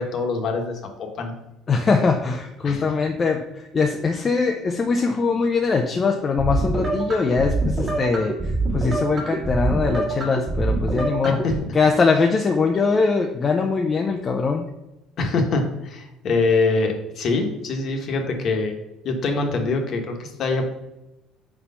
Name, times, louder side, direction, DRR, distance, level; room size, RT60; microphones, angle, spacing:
voice 1, 0.0-1.3 2.6-2.8 11.2-11.5 15.2-18.8 19.0-20.7, left 3 dB, 45° left, 3 dB, 1.1 m, -24 dB
voice 2, 1.7-11.4 11.7-14.7, left 4 dB, 25° left, 3 dB, 0.4 m, -22 dB
sound 1, 6.4-11.6, right 2 dB, 25° right, 1.5 m, -25 dB
4.4 x 4.2 x 5.5 m, 0.95 s
cardioid pair, 135°, 0 cm